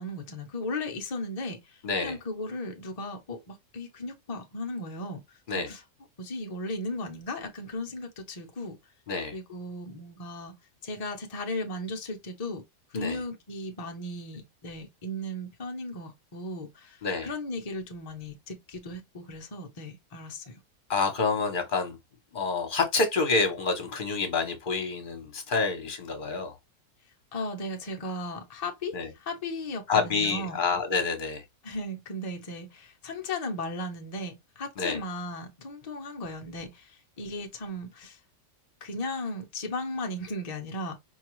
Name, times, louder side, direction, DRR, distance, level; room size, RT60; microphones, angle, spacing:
voice 1, 0.0-5.4 5.7-5.8 6.2-8.8 9.3-10.5 10.8-12.6 12.9-20.6 27.3-30.6 31.6-38.2 38.8-41.0, left 1 dB, 70° left, 0.3 m, -36 dB
voice 2, 1.8-2.2 5.5-5.7 9.1-9.3 12.9-13.2 17.0-17.3 20.9-22.0 22.3-26.6 28.9-29.1 29.9-31.4 34.8-35.0, left 4 dB, 40° left, 0.9 m, -28 dB
4.5 x 2.3 x 3.0 m
omnidirectional pair, 1.7 m